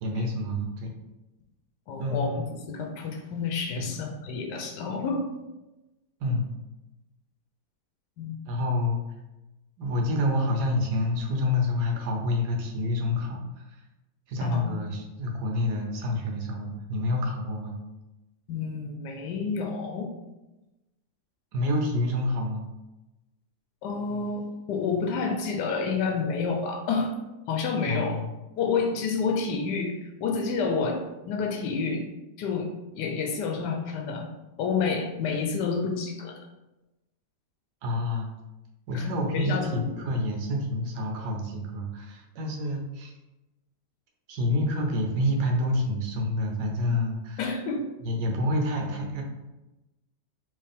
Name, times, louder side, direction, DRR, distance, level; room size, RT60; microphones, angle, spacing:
voice 1, 0.0-0.9 2.0-2.4 3.8-3.9 6.2-6.5 8.5-9.0 9.8-13.7 14.3-17.7 21.5-22.6 27.9-28.3 37.8-38.3 38.9-43.1 44.3-47.4 48.0-49.2, left 1 dB, 75° right, 2 dB, 1.4 m, -28 dB
voice 2, 1.9-5.3 8.2-8.4 14.4-14.7 18.5-20.1 23.8-27.1 27.5-28.2 28.6-32.1 32.4-34.3 34.6-36.4 38.9-39.1 39.3-39.8 47.4-47.8, left 5 dB, 90° left, 4 dB, 1.2 m, -29 dB
4.5 x 3.2 x 3.4 m, 1.0 s
omnidirectional pair, 1.8 m